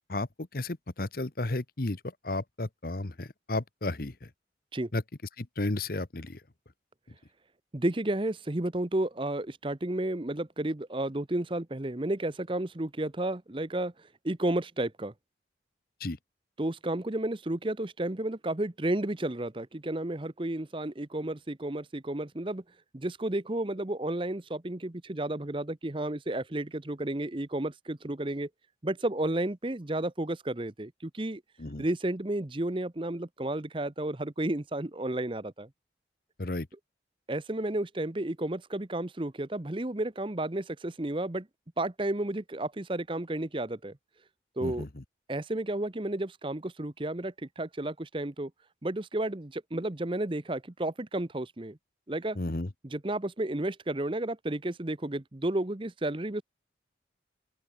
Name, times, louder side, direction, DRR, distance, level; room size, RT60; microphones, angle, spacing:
voice 1, 0.5-2.0 2.2-4.1 4.9-5.0 5.4-6.4 16.0-16.2 31.6-31.8 36.4-36.7 44.6-44.9 52.4-52.7, left 2 dB, 50° left, 1.1 m, -33 dB
voice 2, 7.7-13.9 14.2-15.1 16.6-22.6 22.9-28.5 28.8-31.4 31.8-35.7 37.3-41.5 41.8-43.9 44.6-44.9 45.3-48.5 48.8-51.8 52.1-52.4 52.8-56.4, right 1 dB, 25° right, 0.9 m, -32 dB
open air
head